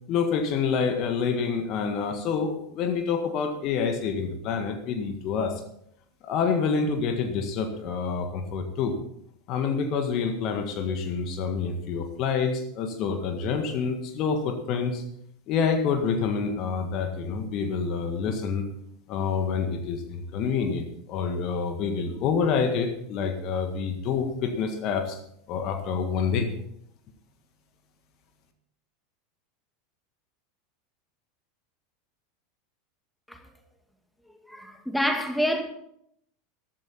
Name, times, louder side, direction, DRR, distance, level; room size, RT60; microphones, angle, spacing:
voice 1, 0.1-5.6 6.2-8.9 9.5-15.0 15.5-18.7 19.1-25.2 25.5-26.5, left 5 dB, 45° left, 1.7 m, -27 dB
voice 2, 34.5-35.6, equal, 5° left, 2.0 m, -27 dB
14.5 x 12.5 x 4.3 m
figure-of-eight pair, 80°, 0 cm